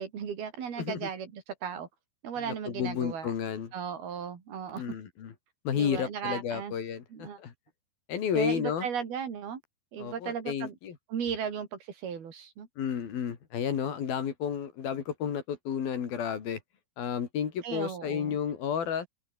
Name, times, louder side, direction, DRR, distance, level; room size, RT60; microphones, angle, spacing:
voice 1, 0.0-1.9 2.2-3.3 3.7-4.8 5.8-6.7 7.1-7.4 8.4-9.6 9.9-10.8 11.1-12.7 17.6-18.4, right 7 dB, 75° right, 5.3 m, -36 dB
voice 2, 0.8-1.1 2.4-3.7 4.7-5.3 5.6-7.5 8.1-8.9 10.0-11.0 12.8-16.6 17.0-19.1, left 8 dB, 70° left, 4.7 m, -32 dB
open air
omnidirectional pair, 4.5 m